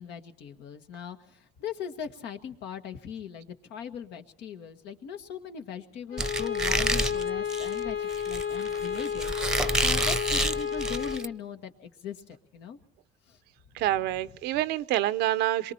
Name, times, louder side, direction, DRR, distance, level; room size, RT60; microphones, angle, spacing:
voice 1, 0.0-12.8 13.3-13.4 14.3-14.4, left 7 dB, 85° left, 1.7 m, -40 dB
Bowed string instrument, 6.1-11.3, left 8 dB, 65° left, 2.4 m, -31 dB
Squeak, 6.2-11.3, right 1 dB, 5° right, 0.8 m, -29 dB
voice 2, 13.8-15.7, right 14 dB, 90° right, 0.8 m, -27 dB
26.5 x 23.0 x 4.3 m
cardioid pair, 110°, 17 cm